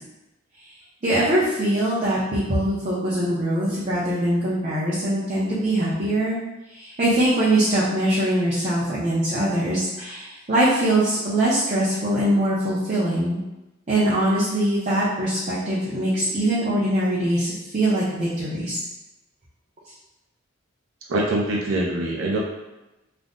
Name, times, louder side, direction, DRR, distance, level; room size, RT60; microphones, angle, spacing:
voice 1, 1.0-6.4 6.7-13.4 13.9-18.8, right 1 dB, 35° right, -9 dB, 0.6 m, -22 dB
voice 2, 21.1-22.4, right 2 dB, 85° right, -3 dB, 0.5 m, -23 dB
2.5 x 2.0 x 3.5 m, 1.0 s
head